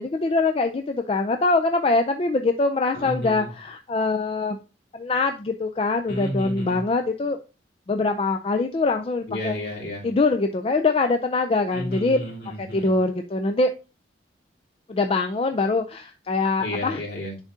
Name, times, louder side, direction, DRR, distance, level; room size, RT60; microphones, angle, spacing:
voice 1, 0.0-4.6 4.9-7.4 7.9-9.6 10.0-12.2 12.6-13.7 14.9-17.0, left 3 dB, 30° left, 6 dB, 0.4 m, -23 dB
voice 2, 2.9-3.5 6.1-6.8 9.3-10.0 11.7-12.9 16.6-17.3, left 1 dB, 65° left, -3 dB, 3.1 m, -32 dB
10.5 x 3.7 x 2.7 m, 0.32 s
head